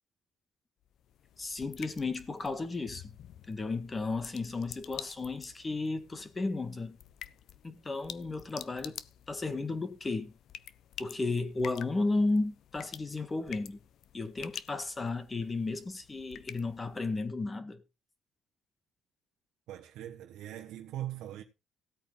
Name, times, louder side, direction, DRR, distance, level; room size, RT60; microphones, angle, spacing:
sound 1, 0.8-17.3, left 10 dB, 60° left, 0.7 m, -49 dB
voice 1, 1.4-3.1 3.5-7.0 7.6-9.0 9.3-10.4 11.0-13.8 14.1-17.8, left 3 dB, 20° left, 1.7 m, -34 dB
voice 2, 19.7-21.4, right 12 dB, 75° right, 1.3 m, -41 dB
16.5 x 8.7 x 3.9 m
cardioid pair, 130°, 0 cm